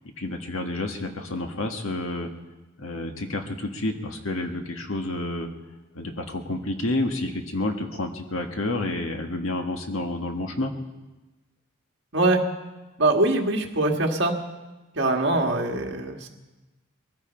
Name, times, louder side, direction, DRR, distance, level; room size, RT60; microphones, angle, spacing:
voice 1, 0.2-2.3 2.8-5.5 6.0-10.7, left 2 dB, 80° left, 4 dB, 1.7 m, -29 dB
voice 2, 13.0-14.4 15.0-16.3, right 2 dB, 55° right, 2 dB, 1.8 m, -23 dB
21.5 x 15.0 x 4.5 m, 1.1 s
head